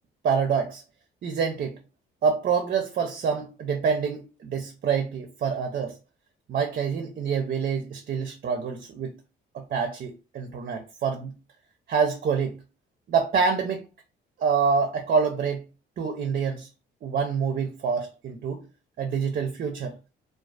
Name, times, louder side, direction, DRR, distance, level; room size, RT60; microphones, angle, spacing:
voice 1, 0.2-0.8 1.2-1.7 2.2-5.9 6.5-9.1 9.5-11.3 11.9-12.5 13.1-13.8 14.4-15.6 16.0-16.7 17.0-18.6 19.0-19.9, right 6 dB, 50° right, 0.4 m, -26 dB
2.4 x 2.3 x 2.3 m
cardioid pair, 90°, 20 cm